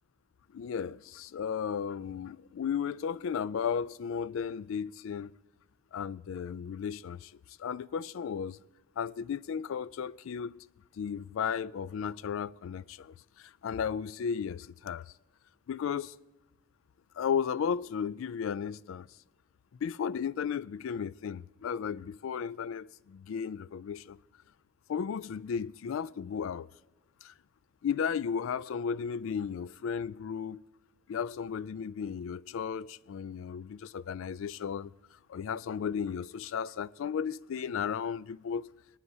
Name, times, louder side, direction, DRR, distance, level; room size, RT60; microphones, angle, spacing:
voice 1, 0.5-5.3 5.9-7.3 7.6-8.6 9.0-10.6 11.0-15.0 15.7-16.1 17.2-19.1 19.8-24.2 24.9-26.7 27.2-27.3 27.8-30.6 31.1-34.9 35.3-38.7, left 7 dB, 70° left, 0.3 m, -34 dB
19.0 x 12.5 x 2.8 m
head